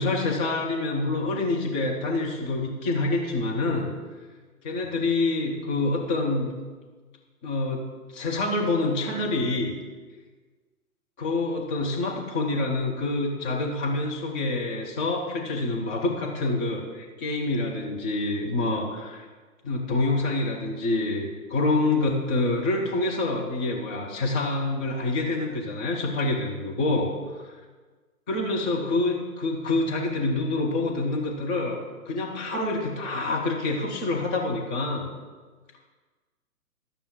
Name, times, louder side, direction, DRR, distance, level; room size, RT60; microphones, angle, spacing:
voice 1, 0.0-3.9 4.6-6.5 7.4-7.8 8.1-9.8 11.2-19.3 19.6-27.5 28.3-35.1, left 2 dB, 5° left, -2 dB, 0.4 m, -27 dB
12.5 x 6.7 x 7.3 m, 1.4 s
figure-of-eight pair, 125°, 45 cm